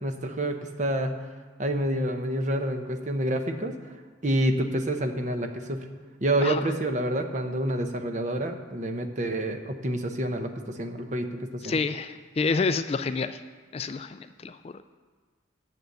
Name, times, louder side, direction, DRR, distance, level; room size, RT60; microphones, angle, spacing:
voice 1, 0.0-1.1 1.6-3.7 4.2-5.9 6.2-11.8, right 1 dB, 40° right, 6 dB, 0.8 m, -28 dB
voice 2, 11.6-13.4 13.7-14.8, left 4 dB, 30° left, 11 dB, 0.3 m, -28 dB
9.2 x 6.9 x 7.9 m, 1.4 s
head